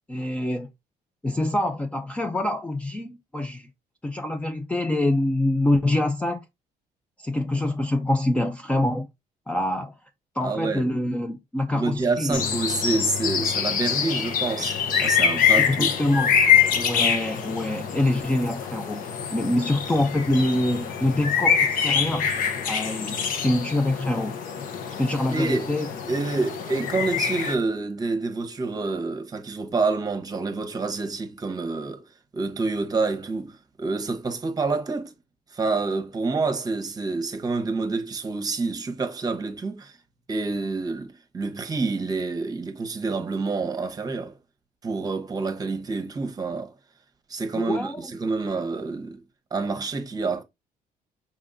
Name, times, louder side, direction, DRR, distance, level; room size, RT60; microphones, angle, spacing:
voice 1, 0.1-0.7 1.2-3.7 4.0-6.4 7.2-9.1 9.5-10.0 10.4-12.4 15.6-16.4 16.7-19.0 19.3-22.3 22.7-24.4 25.0-25.9 47.6-48.1, left 1 dB, 10° left, 0.4 m, -25 dB
voice 2, 10.4-10.9 11.7-15.9 25.3-25.7 26.1-32.0 32.3-35.1 35.5-40.0 40.3-44.4 44.8-46.8 47.3-49.2 49.5-50.4, right 3 dB, 25° right, 0.9 m, -28 dB
sound 1, 12.3-27.5, left 7 dB, 65° left, 0.9 m, -25 dB
5.7 x 3.6 x 2.5 m
cardioid pair, 135°, 15 cm